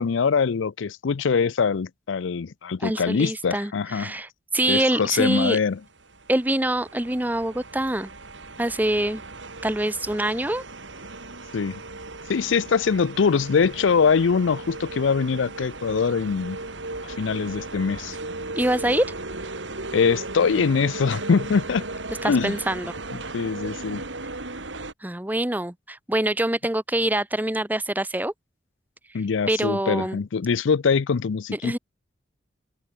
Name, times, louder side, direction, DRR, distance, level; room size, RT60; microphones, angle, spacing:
voice 1, 0.0-4.1 4.7-5.8 11.5-11.8 12.3-16.6 17.0-18.2 19.9-21.8 22.2-22.5 23.3-24.0 29.1-31.8, left 5 dB, 80° left, 0.5 m, -23 dB
voice 2, 2.8-5.6 6.3-8.1 8.6-9.2 9.6-10.6 18.5-19.0 22.2-22.9 25.0-28.3 29.5-30.2 31.6-31.8, right 1 dB, 10° right, 0.8 m, -25 dB
sound 1, 6.0-24.9, right 2 dB, 75° right, 3.8 m, -36 dB
head